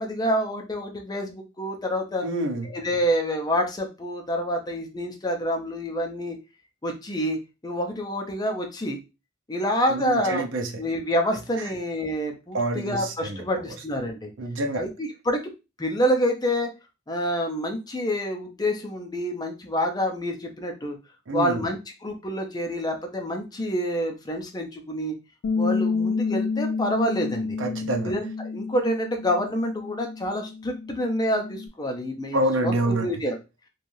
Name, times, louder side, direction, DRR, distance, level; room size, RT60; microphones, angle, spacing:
voice 1, 0.0-2.3 2.6-6.4 6.8-9.0 9.5-10.4 10.8-14.3 14.8-15.4 15.8-16.7 17.1-21.0 21.3-25.2 25.6-27.6 28.0-33.4, equal, 20° left, 0.5 m, -27 dB
voice 2, 2.2-2.7 9.9-10.8 12.5-13.6 14.4-14.8 21.3-21.6 27.6-28.1 32.3-33.1, right 1 dB, 70° right, 0.6 m, -27 dB
Bass guitar, 25.4-31.7, left 4 dB, 80° left, 0.4 m, -29 dB
3.2 x 2.3 x 2.6 m
head